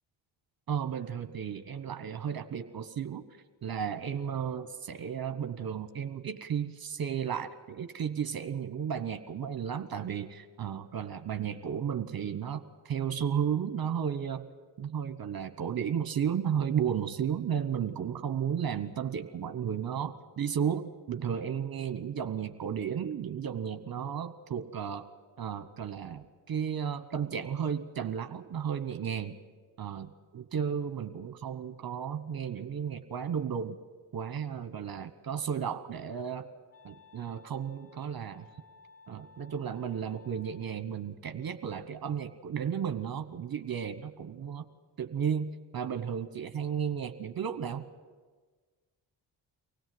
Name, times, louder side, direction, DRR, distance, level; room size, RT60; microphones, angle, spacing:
voice 1, 0.7-3.3 3.6-14.5 14.8-25.1 25.4-29.4 29.8-33.8 34.1-36.5 36.8-38.5 39.1-44.6 45.0-47.8, right 8 dB, 50° right, 9 dB, 1.1 m, -33 dB
Wind instrument woodwind instrument, 35.7-40.8, left 5 dB, 35° left, 6.1 m, -59 dB
24.5 x 17.0 x 7.8 m, 1.4 s
cardioid pair, 65°, 46 cm